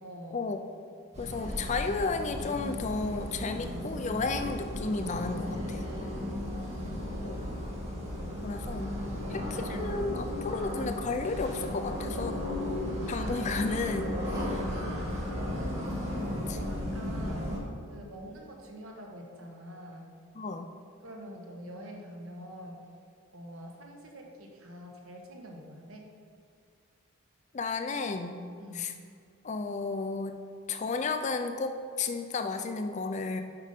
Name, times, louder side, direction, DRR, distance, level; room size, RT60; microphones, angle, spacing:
voice 1, 0.0-0.4 6.2-7.0 9.1-9.5 14.3-15.0 15.5-15.9 16.5-17.5 17.9-20.1 21.0-22.8 23.3-26.0 28.6-28.9, equal, 70° right, 1 dB, 1.2 m, -46 dB
sound 1, 1.1-17.6, left 1 dB, 30° right, 1.5 m, -35 dB
voice 2, 1.2-5.9 7.2-7.4 8.4-8.9 9.3-12.4 13.1-14.1 14.9-15.0 16.5-16.6 20.4-20.7 27.5-28.4 28.7-28.9 29.4-30.4 30.7-33.4, left 4 dB, 30° left, 7 dB, 0.4 m, -33 dB
7.4 x 5.4 x 5.1 m, 2.2 s
head